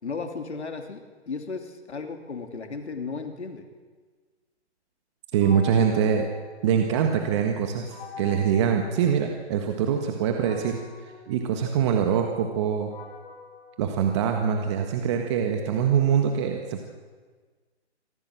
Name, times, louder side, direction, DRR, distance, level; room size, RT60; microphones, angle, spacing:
voice 1, 0.0-3.7, left 4 dB, 75° left, 4 dB, 3.2 m, -35 dB
voice 2, 5.3-6.3 6.6-10.8 11.3-12.9 13.8-16.8, right 8 dB, 25° right, 4 dB, 1.6 m, -24 dB
sound 1, 5.4-7.2 7.9-9.7 10.4-14.7, left 8 dB, 25° left, 5.4 m, -45 dB
25.5 x 16.5 x 7.8 m, 1.4 s
hypercardioid pair, 150°, 34 cm